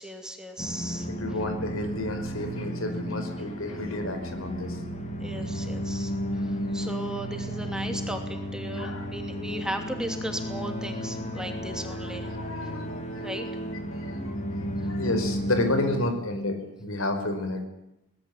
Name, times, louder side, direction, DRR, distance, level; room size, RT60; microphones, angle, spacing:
voice 1, 0.0-1.1 5.2-12.3 12.6-12.7 13.2-13.5, right 1 dB, 5° right, 4 dB, 2.7 m, -36 dB
sound 1, 0.6-16.1, equal, 35° left, 3.6 m, -33 dB
voice 2, 1.1-4.8 8.7-9.1 11.8-13.3 13.9-17.6, left 2 dB, 90° left, 7 dB, 5.3 m, -31 dB
23.5 x 19.5 x 8.6 m, 0.92 s
head